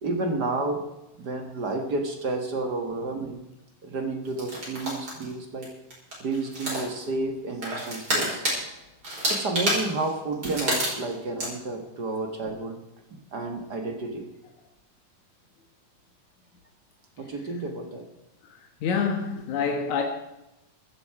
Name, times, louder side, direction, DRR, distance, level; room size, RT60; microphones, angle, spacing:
voice 1, 0.0-0.9 1.2-3.4 3.8-5.7 6.2-8.4 9.3-12.8 13.1-14.3 17.2-18.1, right 2 dB, 40° right, 5 dB, 1.5 m, -31 dB
sound 1, 4.4-5.3 5.6-5.7 5.9-7.1 7.6-8.6 9.0-11.1 11.4-11.5, right 1 dB, 25° right, 5.9 m, -28 dB
voice 2, 18.8-20.0, left 6 dB, 65° left, 3 dB, 2.6 m, -26 dB
15.0 x 13.5 x 4.8 m, 0.93 s
omnidirectional pair, 4.0 m